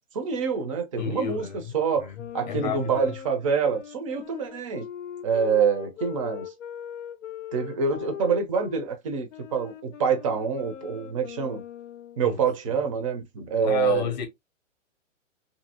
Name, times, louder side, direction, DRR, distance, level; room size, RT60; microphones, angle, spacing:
voice 1, 0.1-1.5 1.7-2.1 2.3-4.9 5.2-6.5 7.5-11.6 12.2-14.1, right 6 dB, 25° right, 0.5 m, -26 dB
voice 2, 1.0-3.1 12.2-12.4 12.7-12.8 13.6-14.3, left 8 dB, 35° left, 0.7 m, -32 dB
sound 1, 2.2-8.9 9.3-12.3, left 10 dB, 70° left, 0.6 m, -40 dB
2.7 x 2.6 x 2.7 m
hypercardioid pair, 150°, 39 cm